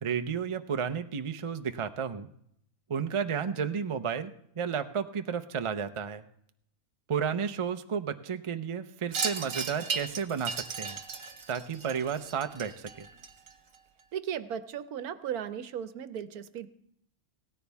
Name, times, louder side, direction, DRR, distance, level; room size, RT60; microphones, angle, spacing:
voice 1, 0.0-2.3 2.9-6.2 7.1-11.0 11.5-13.1, right 7 dB, 45° right, 8 dB, 0.4 m, -32 dB
Wind chime, 9.1-13.8, right 5 dB, 60° right, 1.5 m, -36 dB
voice 2, 14.1-16.7, right 9 dB, 80° right, 12 dB, 1.3 m, -36 dB
17.5 x 14.0 x 3.5 m, 0.70 s
omnidirectional pair, 1.6 m